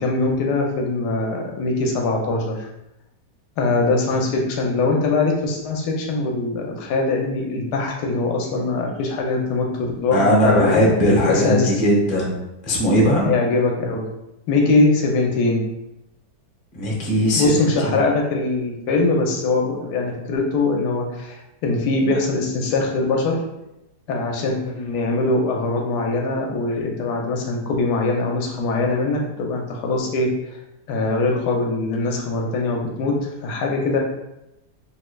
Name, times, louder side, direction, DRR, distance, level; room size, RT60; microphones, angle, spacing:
voice 1, 0.0-2.7 3.6-10.8 11.3-11.7 13.2-14.0 14.5-15.6 17.3-23.4 24.1-30.6 30.9-33.1 33.4-34.0, left 3 dB, 80° left, 1 dB, 1.2 m, -22 dB
voice 2, 10.1-12.4 12.6-13.3 16.7-18.0, equal, 40° left, -3 dB, 0.8 m, -18 dB
3.5 x 3.1 x 2.2 m, 0.89 s
omnidirectional pair, 1.8 m